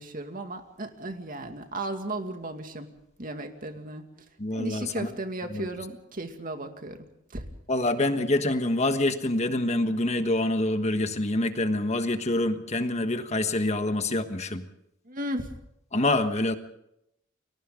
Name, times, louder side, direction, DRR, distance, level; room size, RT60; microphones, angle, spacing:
voice 1, 0.0-2.9 3.2-4.1 4.5-7.0 7.3-7.4 15.1-15.5, right 1 dB, 45° right, 6 dB, 2.3 m, -35 dB
voice 2, 4.4-5.1 5.5-5.7 7.7-14.6 15.9-16.5, left 2 dB, 35° left, 8 dB, 1.4 m, -26 dB
30.0 x 22.5 x 3.9 m, 0.79 s
head